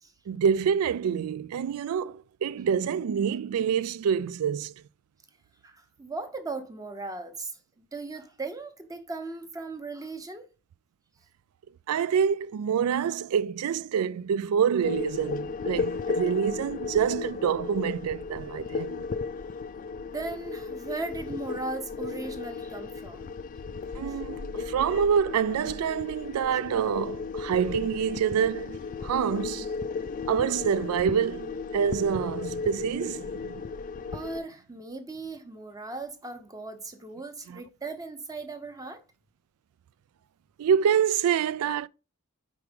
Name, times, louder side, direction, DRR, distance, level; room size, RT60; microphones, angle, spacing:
voice 1, 0.3-4.7 11.9-19.1 24.0-29.7 30.3-33.5 37.5-37.6 40.6-41.9, right 7 dB, 75° right, 0.3 m, -27 dB
voice 2, 5.6-7.6 7.9-10.5 20.1-23.4 34.1-39.0, right 3 dB, 15° right, 0.8 m, -37 dB
sound 1, 14.8-34.4, left 4 dB, 35° left, 0.3 m, -35 dB
4.8 x 4.6 x 5.2 m
head